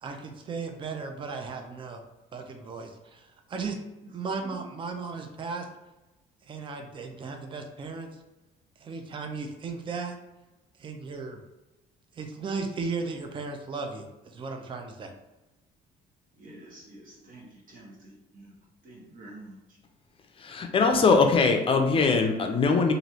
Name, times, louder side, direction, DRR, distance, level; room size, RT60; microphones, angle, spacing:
voice 1, 0.0-2.0 2.3-3.8 4.1-5.7 6.5-8.1 8.8-10.2 10.8-11.4 12.1-15.1, right 4 dB, 30° right, 5 dB, 0.4 m, -36 dB
voice 2, 16.4-18.5 18.8-19.6, right 1 dB, 55° right, -3 dB, 1.2 m, -48 dB
voice 3, 20.4-22.9, left 4 dB, 35° left, 5 dB, 0.5 m, -21 dB
3.0 x 2.5 x 2.7 m, 1.0 s
cardioid pair, 110°, 17 cm